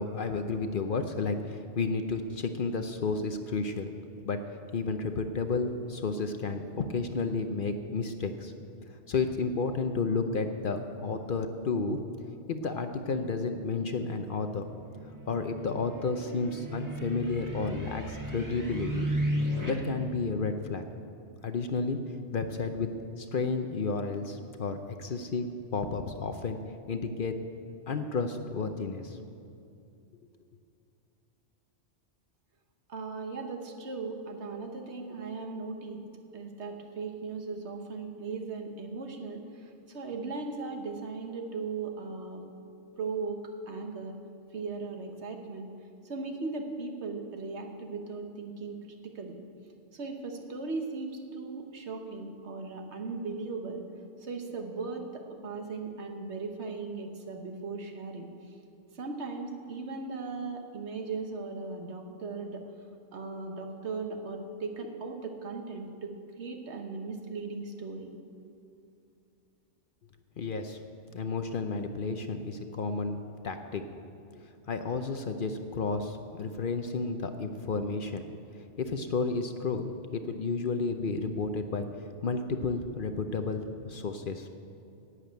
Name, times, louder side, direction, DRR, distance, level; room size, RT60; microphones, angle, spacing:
voice 1, 0.0-3.9 4.2-4.4 4.7-8.5 9.1-12.0 12.5-14.7 15.3-19.1 19.7-20.8 21.4-22.0 22.3-22.9 23.2-26.6 26.9-27.3 27.9-29.2 70.4-70.8 71.1-73.2 73.4-73.8 74.7-78.2 78.8-81.9 82.2-84.5, left 4 dB, 55° left, 7 dB, 0.8 m, -31 dB
sound 1, 14.7-19.7, equal, 15° right, 1.6 m, -34 dB
voice 2, 32.9-36.0 36.3-42.4 43.0-44.2 44.5-45.7 46.0-48.8 49.1-49.4 49.9-53.9 54.2-58.3 58.9-62.6 63.1-68.1, right 4 dB, 65° right, 4 dB, 1.5 m, -38 dB
11.0 x 8.3 x 9.0 m, 2.6 s
omnidirectional pair, 1.2 m